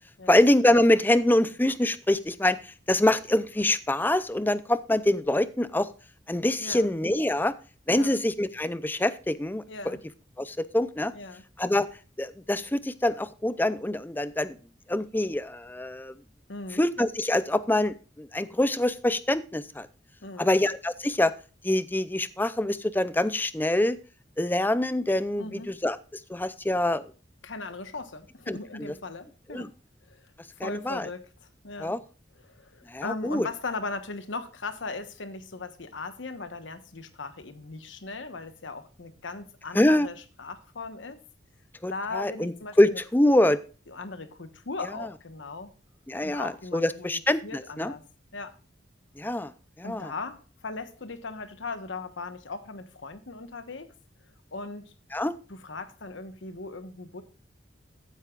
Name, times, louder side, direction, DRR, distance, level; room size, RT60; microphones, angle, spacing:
voice 1, 0.3-2.6 2.9-5.9 6.3-7.5 7.9-10.0 10.4-11.1 11.6-11.9 12.2-14.6 14.9-16.1 16.7-19.9 20.4-21.3 21.6-24.0 24.4-26.0 26.3-27.0 28.5-28.9 29.5-29.7 30.6-31.1 31.8-32.0 32.9-33.5 39.7-40.1 41.8-43.6 46.1-47.9 49.2-49.5 49.8-50.1 55.1-55.3, left 1 dB, 10° left, 0.5 m, -25 dB
voice 2, 6.6-6.9 7.9-8.2 9.7-10.0 11.1-11.4 16.5-16.8 20.2-20.5 25.4-25.7 27.4-29.7 30.1-30.2 30.6-31.2 31.6-32.0 32.4-41.2 41.9-43.0 43.3-43.5 43.9-45.7 46.2-48.0 48.3-48.5 49.8-53.9 54.5-54.9 55.5-57.2, left 3 dB, 90° left, 1.2 m, -38 dB
14.5 x 8.2 x 2.4 m
head